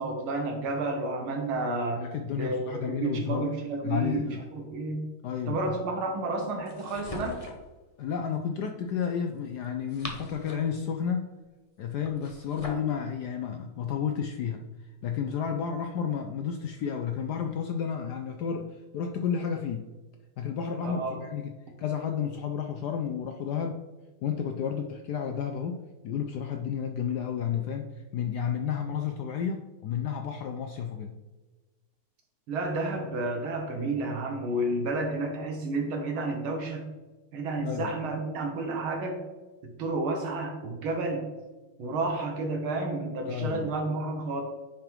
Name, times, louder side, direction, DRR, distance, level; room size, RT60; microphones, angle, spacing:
voice 1, 0.0-2.0 2.3-5.1 5.5-7.4 20.8-21.2 32.5-36.9 37.3-39.2 39.8-41.3 41.8-44.4, right 2 dB, 75° right, 2 dB, 1.9 m, -31 dB
voice 2, 2.0-3.5 3.8-4.4 5.2-5.8 8.0-11.3 11.8-14.6 15.0-19.8 20.4-21.5 21.8-23.8 24.2-31.1 37.6-37.9 43.3-43.7, left 7 dB, 80° left, 4 dB, 0.9 m, -31 dB
sound 1, 6.7-7.7 9.6-10.8 12.0-12.9, left 2 dB, 40° left, 0.5 m, -41 dB
9.8 x 3.6 x 4.5 m, 1.2 s
omnidirectional pair, 2.4 m